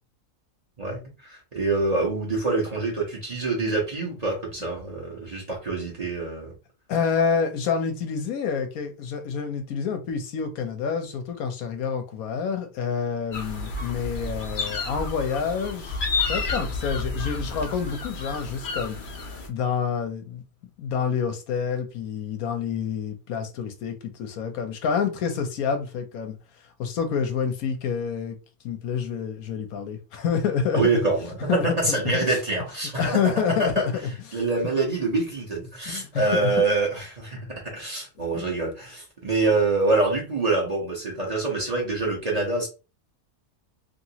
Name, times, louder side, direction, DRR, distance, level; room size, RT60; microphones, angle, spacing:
voice 1, 0.8-6.5 30.7-33.3 33.6-33.8 34.3-42.7, right 3 dB, 30° right, 1.0 m, -25 dB
voice 2, 6.9-16.0 16.3-19.0 19.5-20.4 20.8-26.4 26.8-28.4 28.6-30.8 31.5-32.4 33.0-33.9 34.3-34.4 35.9-36.4 38.3-38.5, left 6 dB, 80° left, 1.2 m, -28 dB
sound 1, 13.3-19.5, left 3 dB, 45° left, 0.8 m, -31 dB
3.0 x 2.9 x 2.8 m
omnidirectional pair, 1.5 m